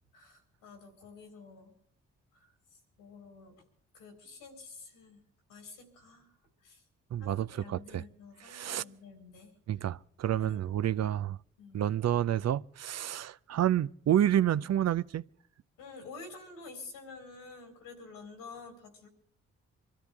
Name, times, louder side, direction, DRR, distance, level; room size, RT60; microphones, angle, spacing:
voice 1, 0.1-1.8 2.3-3.6 3.9-5.2 5.5-6.3 6.6-6.8 7.2-9.5 10.3-11.2 11.6-11.8 15.8-19.1, left 4 dB, 85° left, 4.1 m, -50 dB
voice 2, 7.1-8.0 8.5-8.8 9.7-11.4 11.7-15.2, right 11 dB, 50° right, 0.6 m, -29 dB
25.0 x 13.5 x 3.5 m
hypercardioid pair, 45°, 33 cm